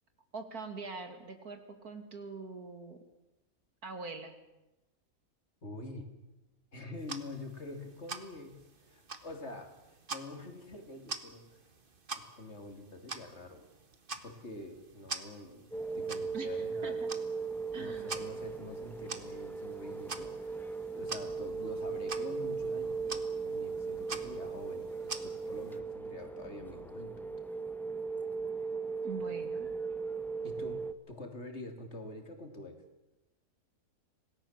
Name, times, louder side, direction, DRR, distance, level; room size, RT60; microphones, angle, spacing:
voice 1, 0.3-3.0 3.8-4.3 16.3-16.5 16.8-17.1 17.7-18.2 29.0-29.7, right 4 dB, 85° right, 7 dB, 3.0 m, -43 dB
voice 2, 5.6-6.1 6.7-8.5 8.8-11.6 12.2-13.7 14.2-17.0 17.8-27.3 30.4-30.8 31.1-32.8, left 2 dB, 50° left, 5 dB, 3.2 m, -46 dB
sound 1, 7.0-25.8, right 4 dB, 35° right, 1.6 m, -47 dB
sound 2, 15.7-30.9, right 4 dB, ahead, 1.0 m, -38 dB
26.5 x 18.5 x 7.4 m, 1.0 s
omnidirectional pair, 1.5 m